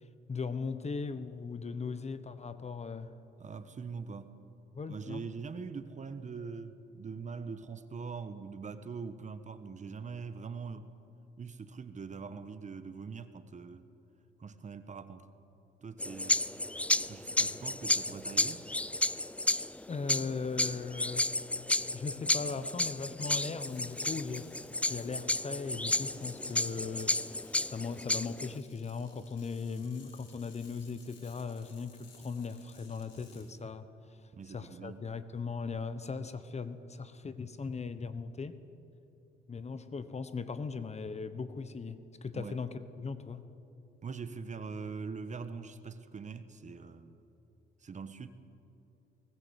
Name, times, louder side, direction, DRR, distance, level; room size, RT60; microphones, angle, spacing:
voice 1, 0.3-3.1 4.7-5.2 19.9-21.4 21.9-24.5 24.9-27.2 27.6-33.9 34.5-38.6 39.5-43.5, left 4 dB, 35° left, 12 dB, 1.2 m, -38 dB
voice 2, 3.4-4.3 4.9-10.9 11.4-13.9 14.4-15.3 15.8-16.4 17.1-18.6 34.3-35.1 42.3-42.6 44.0-47.2 47.8-48.3, right 5 dB, 35° right, 11 dB, 1.3 m, -42 dB
sound 1, 16.0-28.6, left 1 dB, 5° left, 0.4 m, -32 dB
sound 2, 23.3-33.6, left 5 dB, 65° left, 5.1 m, -60 dB
20.0 x 18.5 x 8.2 m, 2.8 s
cardioid pair, 90°, 20 cm